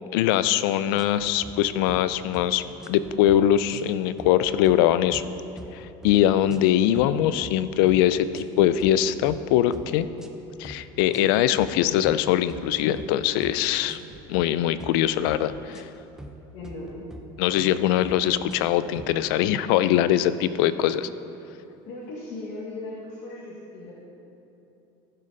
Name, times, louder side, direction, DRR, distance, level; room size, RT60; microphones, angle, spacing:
voice 1, 0.1-2.6 2.9-5.2 5.7-10.1 10.6-14.0 14.3-15.9 17.4-21.1, left 11 dB, 80° left, 14 dB, 0.4 m, -22 dB
sound 1, 1.0-1.6 1.9-2.1 2.3-2.5 2.8-3.4 3.7-3.9 4.2-4.8 5.1-5.3 5.6-6.2 6.5-6.7 7.0-7.5 7.9-8.0 8.3-8.9 9.3-9.5 9.7-10.3 10.6-10.8 11.1-11.8 12.0-13.1 13.4-13.6 13.9-14.5 14.8-15.0 15.3-16.4 16.6-17.3 17.6-17.8 18.0-18.7 19.0-19.1, equal, 5° right, 0.6 m, -43 dB
voice 2, 16.5-17.1 21.8-24.0, left 2 dB, 60° left, -6 dB, 1.8 m, -37 dB
15.5 x 6.7 x 3.9 m, 2.9 s
supercardioid pair, 130°, 12 cm